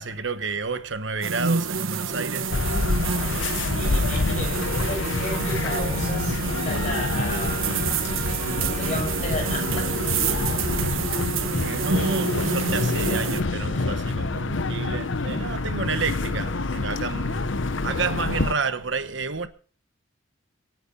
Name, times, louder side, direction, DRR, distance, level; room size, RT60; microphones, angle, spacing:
voice 1, 0.0-2.8 11.6-19.5, right 4 dB, 65° right, 1.2 m, -30 dB
sound 1, 1.2-13.4, right 5 dB, 85° right, 1.3 m, -28 dB
sound 2, 2.5-18.5, left 3 dB, 70° left, 0.8 m, -27 dB
voice 2, 3.2-7.8 8.2-9.9 10.3-10.7 13.7-14.2, left 1 dB, 35° left, 6.7 m, -35 dB
Wind instrument woodwind instrument, 4.5-10.6, right 2 dB, 15° left, 2.6 m, -40 dB
26.0 x 9.4 x 4.3 m
head